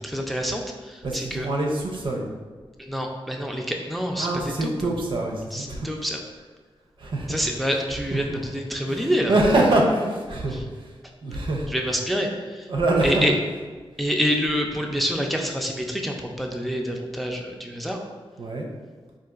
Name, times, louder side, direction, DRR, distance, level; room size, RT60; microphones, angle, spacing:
voice 1, 0.0-1.5 2.8-4.7 5.5-6.2 7.3-9.3 10.5-10.6 11.7-12.7 13.0-13.3 14.0-18.0, equal, ahead, 1 dB, 0.3 m, -27 dB
voice 2, 1.0-2.2 4.2-5.9 7.0-7.4 8.3-8.4 8.9-10.6 11.2-11.7 12.7-13.3 18.4-18.7, right 2 dB, 60° right, 0 dB, 0.5 m, -24 dB
3.8 x 2.4 x 2.3 m, 1.5 s
wide cardioid pair, 100°, 9 cm